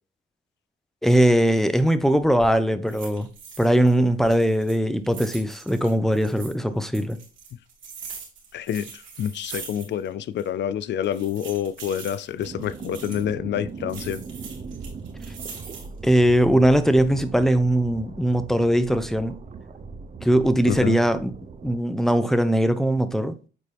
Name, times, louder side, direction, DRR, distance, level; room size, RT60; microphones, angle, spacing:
voice 1, 1.0-3.3 3.6-7.2 16.0-19.4 20.2-21.3 21.6-23.4, right 1 dB, ahead, 0.8 m, -20 dB
sound 1, 2.2-2.5 2.9-3.9 4.2-6.5 6.9-10.1 10.4-10.5 11.0-13.3 13.9-16.0 16.5-17.0, right 5 dB, 75° right, 3.1 m, -42 dB
voice 2, 8.5-14.2 20.7-21.0, left 10 dB, 65° left, 0.5 m, -28 dB
sound 2, 12.4-21.8, right 4 dB, 35° right, 0.9 m, -39 dB
8.8 x 4.2 x 3.4 m
cardioid pair, 90°, 20 cm